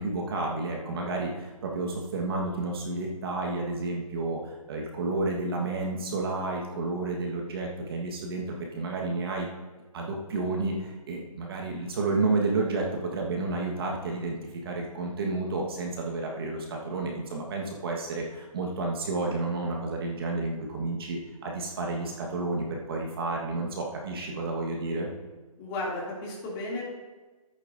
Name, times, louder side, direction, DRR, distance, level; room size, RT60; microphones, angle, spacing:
voice 1, 0.0-9.5 9.9-12.8 13.1-25.1, right 3 dB, 40° right, -1 dB, 1.5 m, -31 dB
voice 2, 25.6-26.8, left 2 dB, 20° left, -4 dB, 2.8 m, -33 dB
14.0 x 8.9 x 2.7 m, 1.2 s
hypercardioid pair, 155°, 19 cm